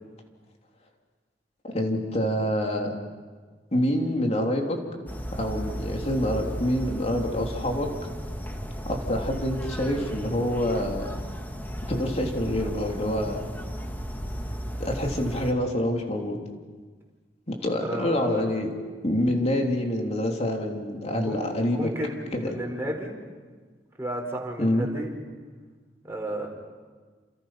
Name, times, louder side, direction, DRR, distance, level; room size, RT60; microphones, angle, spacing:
voice 1, 1.6-2.9 3.7-4.8 5.3-7.9 8.8-11.1 11.9-13.4 14.8-16.4 17.5-18.7 19.0-21.9 22.3-22.5 24.6-24.9, left 1 dB, 40° left, 2 dB, 3.4 m, -26 dB
sound 1, 5.1-15.5, equal, 10° left, 1.9 m, -35 dB
voice 2, 17.8-18.4 21.2-21.4 21.7-23.1 24.0-25.1 26.0-26.5, right 1 dB, 15° right, 0 dB, 4.9 m, -32 dB
29.0 x 28.5 x 6.0 m, 1.5 s
head